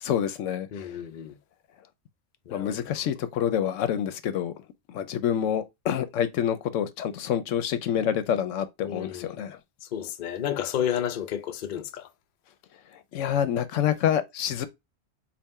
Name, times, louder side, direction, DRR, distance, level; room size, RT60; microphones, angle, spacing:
voice 1, 0.0-0.7 2.5-4.5 4.9-9.6 13.1-14.7, left 9 dB, 80° left, 0.9 m, -27 dB
voice 2, 0.7-1.3 2.5-2.9 8.8-9.3 9.9-12.1, left 9 dB, 55° left, 0.6 m, -31 dB
4.1 x 2.4 x 3.5 m
omnidirectional pair, 1.3 m